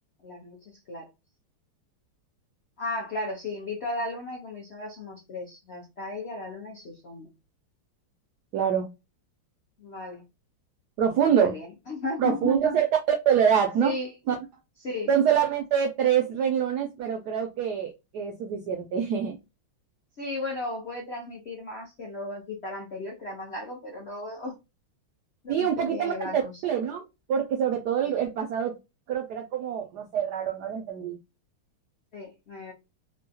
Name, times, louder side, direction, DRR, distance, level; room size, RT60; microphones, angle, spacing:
voice 1, 0.2-1.1 2.8-7.3 9.8-10.2 11.2-12.8 13.8-14.1 14.8-15.1 20.2-24.6 25.4-26.6 28.0-28.2 32.1-32.7, left 2 dB, 70° left, 0.6 m, -35 dB
voice 2, 8.5-8.9 11.0-11.5 12.2-12.9 13.3-13.9 14.3-14.4 15.1-19.4 25.5-27.0 27.3-28.7 29.1-31.2, right 8 dB, 85° right, 0.9 m, -25 dB
3.6 x 2.1 x 2.7 m
omnidirectional pair, 2.3 m